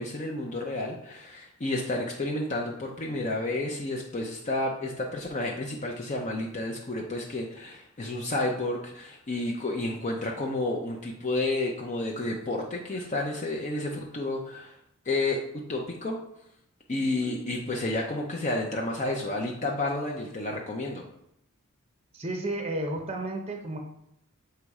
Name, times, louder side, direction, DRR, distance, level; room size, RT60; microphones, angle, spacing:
voice 1, 0.0-14.8 15.1-15.4 15.7-16.2 16.9-21.0, left 2 dB, 35° left, 0 dB, 0.6 m, -31 dB
voice 2, 22.1-23.8, right 1 dB, 30° right, 3 dB, 0.7 m, -32 dB
6.7 x 3.0 x 4.7 m, 0.76 s
head